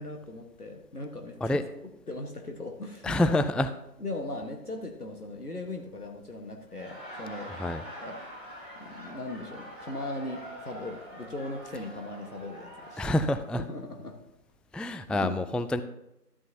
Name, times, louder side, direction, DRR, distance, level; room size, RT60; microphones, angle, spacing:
voice 1, 0.0-1.4 2.1-3.2 4.0-7.7 8.0-8.2 8.7-13.0 13.6-14.2 15.1-15.4, left 2 dB, 65° left, 3 dB, 1.5 m, -38 dB
voice 2, 3.0-3.7 7.6-7.8 13.0-13.6 14.7-15.8, left 1 dB, ahead, 10 dB, 0.3 m, -27 dB
Laughter, 6.6-13.5, equal, 40° left, 4.0 m, -44 dB
12.5 x 8.9 x 2.8 m, 0.86 s
figure-of-eight pair, 175°, 48 cm